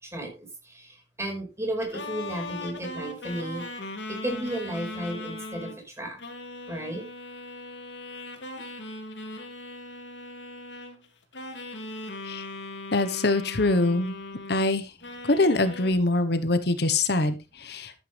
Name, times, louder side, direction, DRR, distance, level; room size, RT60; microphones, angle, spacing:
voice 1, 0.0-3.6 4.1-6.2 6.7-7.0, right 1 dB, 15° right, 2 dB, 5.0 m, -34 dB
sound 1, 1.8-5.8 6.2-11.0 11.3-14.7 15.0-15.9, left 2 dB, 85° left, 2.7 m, -39 dB
voice 2, 12.9-14.1 14.5-14.9 15.2-17.9, left 2 dB, 65° left, 11 dB, 1.2 m, -24 dB
13.0 x 9.3 x 3.4 m, 0.26 s
head